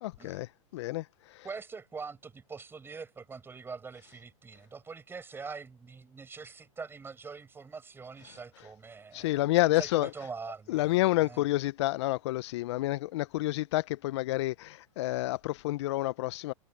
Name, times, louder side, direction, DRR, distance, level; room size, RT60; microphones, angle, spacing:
voice 1, 0.0-1.6 8.6-8.7 9.1-10.1 10.7-16.5, left 17 dB, 50° left, 1.2 m, -29 dB
voice 2, 1.4-9.4 9.7-11.4, right 5 dB, 10° right, 7.2 m, -44 dB
hypercardioid pair, 115°, 18 cm